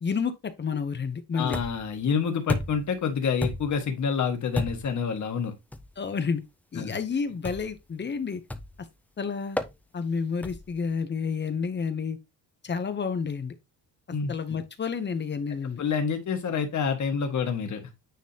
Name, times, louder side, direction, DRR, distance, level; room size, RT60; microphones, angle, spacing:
voice 1, 0.0-1.6 6.0-6.4 6.7-8.4 9.2-9.6 9.9-12.2 12.6-13.5 14.3-15.8, left 5 dB, 25° left, 0.8 m, -30 dB
voice 2, 1.3-5.5 6.8-6.9 14.1-14.6 15.8-17.9, left 6 dB, 45° left, 1.6 m, -28 dB
sound 1, 1.5-2.0 2.5-2.9 3.4-3.9 4.6-5.0 5.7-5.9 7.4-7.8 8.5-8.9 9.6-9.8 10.4-10.8, left 1 dB, 5° left, 0.4 m, -32 dB
9.3 x 3.7 x 2.9 m
cardioid pair, 145°, 41 cm